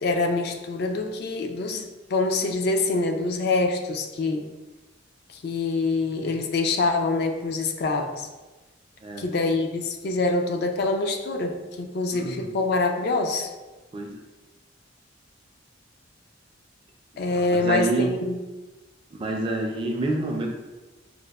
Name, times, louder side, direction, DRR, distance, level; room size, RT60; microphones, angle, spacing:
voice 1, 0.0-4.5 5.3-8.3 9.2-13.5 17.2-18.4, left 3 dB, 55° left, 4 dB, 0.3 m, -25 dB
voice 2, 12.1-12.5 13.9-14.1 17.3-18.2 19.1-20.5, right 2 dB, 25° right, 1 dB, 0.3 m, -27 dB
4.8 x 2.0 x 2.2 m, 1.2 s
head